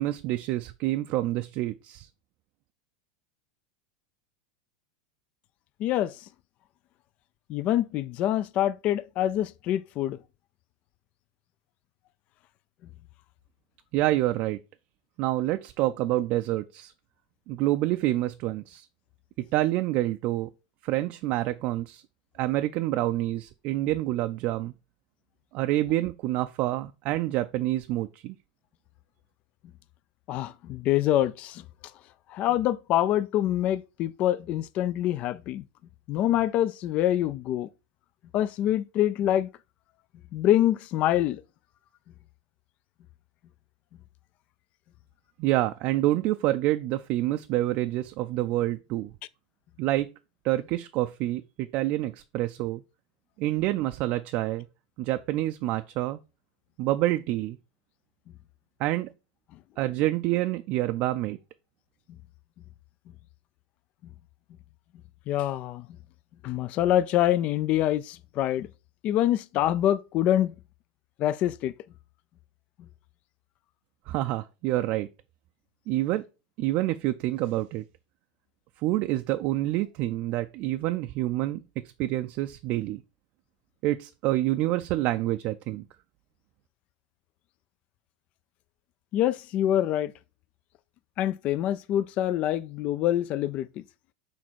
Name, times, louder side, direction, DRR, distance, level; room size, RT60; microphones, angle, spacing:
voice 1, 0.0-2.1 13.9-14.6 15.2-16.9 17.5-18.9 19.5-20.5 20.8-22.0 22.4-24.7 25.5-28.4 45.4-49.1 49.8-50.1 50.4-52.8 53.4-54.7 55.0-56.2 56.8-57.6 58.8-59.1 59.8-61.4 74.1-75.1 75.9-76.2 76.6-77.8 78.8-81.6 82.0-83.0 83.8-85.8, right 16 dB, 45° right, 0.4 m, -27 dB
voice 2, 5.8-6.1 7.5-10.2 30.3-31.6 32.3-35.6 36.1-37.7 38.3-39.5 40.3-41.4 65.3-65.8 66.4-68.7 69.0-70.5 71.2-71.7 89.1-90.1 91.2-93.8, left 12 dB, 40° left, 0.4 m, -25 dB
6.4 x 4.1 x 4.5 m
supercardioid pair, 130°, 3 cm